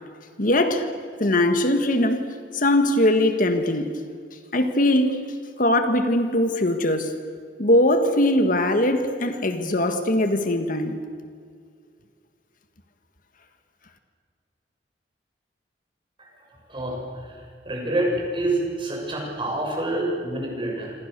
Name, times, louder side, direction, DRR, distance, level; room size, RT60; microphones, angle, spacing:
voice 1, 0.4-0.9 1.2-2.3 2.5-3.9 4.5-5.2 5.6-7.1 7.6-11.0, left 1 dB, 50° left, 1.7 m, -21 dB
voice 2, 16.7-17.4 17.7-20.9, right 1 dB, 30° right, 7.0 m, -27 dB
27.5 x 26.0 x 6.8 m
head